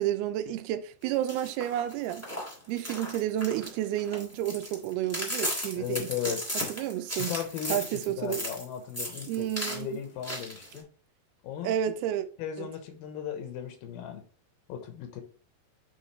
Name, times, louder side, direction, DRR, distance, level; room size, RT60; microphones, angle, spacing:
voice 1, 0.0-2.3 2.7-6.4 6.7-7.3 7.7-8.4 9.3-10.0 11.6-12.3 12.6-12.7, right 12 dB, 85° right, 2.6 m, -31 dB
sound 1, 1.1-8.6 8.9-9.8 10.2-10.8, equal, 15° left, 0.6 m, -36 dB
voice 2, 5.8-6.4 7.3-7.8 8.1-10.9 11.4-11.7 12.4-14.2 14.7-15.2, left 9 dB, 75° left, 2.8 m, -36 dB
8.2 x 3.9 x 3.2 m
omnidirectional pair, 4.5 m